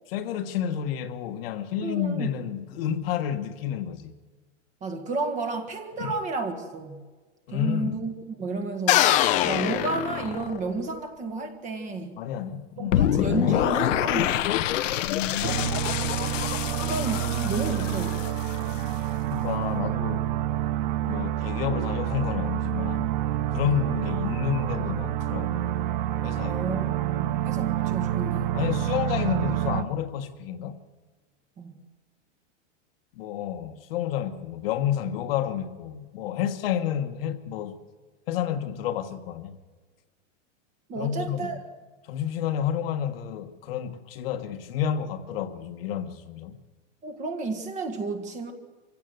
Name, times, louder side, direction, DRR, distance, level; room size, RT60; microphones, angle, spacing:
voice 1, 0.1-4.1 6.0-6.1 7.5-8.0 12.2-13.1 15.0-15.8 19.3-20.3 21.0-23.1 23.5-25.8 26.2-26.6 28.5-30.8 33.1-37.7 38.3-39.6 40.9-41.5 42.1-46.6, left 9 dB, 50° left, 1.5 m, -30 dB
voice 2, 1.8-2.3 4.8-7.0 7.5-8.1 8.4-9.1 9.4-12.3 12.8-14.8 16.8-18.4 23.6-23.8 26.5-28.6 31.6-31.8 40.9-41.6 47.0-48.5, right 3 dB, 20° right, 1.7 m, -32 dB
sound 1, 8.9-10.8, left 13 dB, 20° left, 0.7 m, -23 dB
sound 2, 12.9-18.9, left 12 dB, 75° left, 1.2 m, -26 dB
sound 3, 15.4-29.8, right 12 dB, 40° right, 0.9 m, -28 dB
25.0 x 16.0 x 8.0 m
supercardioid pair, 170°, 37 cm